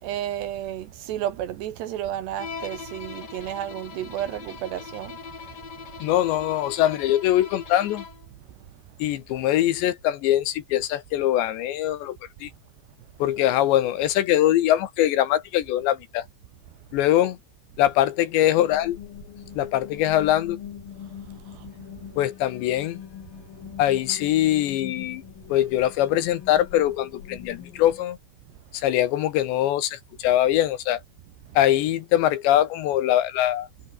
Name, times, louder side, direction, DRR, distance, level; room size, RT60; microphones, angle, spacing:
voice 1, 0.0-5.2 5.4-5.9 21.2-21.7 31.5-31.6, right 12 dB, 70° right, 3.1 m, -32 dB
Bowed string instrument, 2.4-8.3, left 5 dB, 85° left, 0.9 m, -41 dB
voice 2, 6.0-8.0 9.0-12.5 13.2-16.3 16.9-17.4 17.8-19.0 19.5-20.6 22.2-23.0 23.8-25.2 25.5-28.2 28.7-31.0 31.6-33.7, left 13 dB, 70° left, 3.2 m, -22 dB
sound 1, 18.6-28.0, left 9 dB, 55° left, 3.5 m, -42 dB
omnidirectional pair, 5.7 m